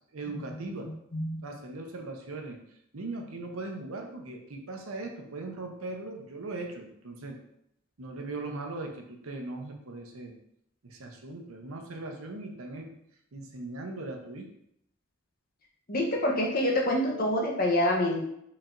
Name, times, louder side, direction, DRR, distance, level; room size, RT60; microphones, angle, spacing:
voice 1, 0.1-0.9 1.4-2.6 2.9-7.4 8.0-10.4 10.8-12.9 13.3-14.5, right 2 dB, 80° right, 3 dB, 0.8 m, -39 dB
voice 2, 15.9-18.2, left 1 dB, 45° left, -1 dB, 0.9 m, -26 dB
4.6 x 4.2 x 2.5 m, 0.75 s
head